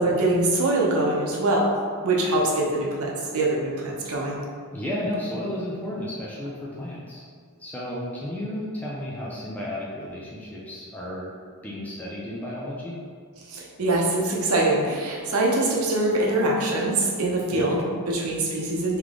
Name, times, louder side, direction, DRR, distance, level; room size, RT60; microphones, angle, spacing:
voice 1, 0.0-1.8 2.0-4.4 13.5-19.0, right 2 dB, 70° right, -2 dB, 0.8 m, -23 dB
voice 2, 4.7-7.2 7.6-11.3 11.6-13.0 17.5-17.8, left 1 dB, 5° left, -6 dB, 0.5 m, -33 dB
3.4 x 3.2 x 3.7 m, 2.1 s
head